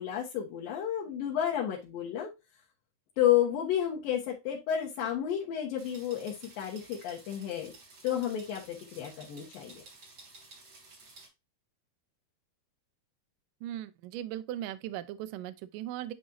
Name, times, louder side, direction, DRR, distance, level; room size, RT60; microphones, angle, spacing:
voice 1, 0.0-2.3 3.2-7.7 8.0-9.8, left 10 dB, 70° left, 2.8 m, -31 dB
sound 1, 5.8-11.3, right 3 dB, 45° right, 3.9 m, -53 dB
voice 2, 13.6-16.1, right 12 dB, 80° right, 2.0 m, -38 dB
10.5 x 4.1 x 2.6 m
omnidirectional pair, 4.5 m